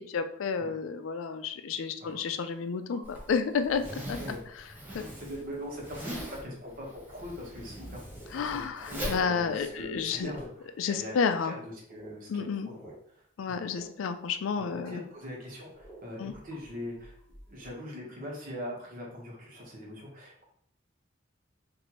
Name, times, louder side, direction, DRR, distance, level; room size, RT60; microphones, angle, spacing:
voice 1, 0.0-4.2 4.9-5.0 8.3-10.3 10.8-11.5 12.3-12.7 13.4-15.0 16.2-16.3, left 6 dB, 85° left, 9 dB, 0.4 m, -31 dB
sound 1, 2.1-2.2 2.9-3.1 3.4-3.5 3.8-3.9 6.0-6.1 7.2-7.3 7.7-7.8 8.0-8.5 8.9-9.2 10.2-10.6 11.2-11.5 11.9-13.0 13.2-13.3 13.6-14.0 14.2-14.3 14.6-14.9 15.7-17.7, right 1 dB, 10° left, 1.1 m, -51 dB
Zipper (clothing), 3.0-10.4, equal, 10° right, 0.8 m, -41 dB
voice 2, 5.1-8.0 8.3-13.6 14.6-17.2 17.5-20.4, left 1 dB, 45° right, -2 dB, 1.2 m, -42 dB
4.2 x 2.6 x 3.0 m, 0.66 s
head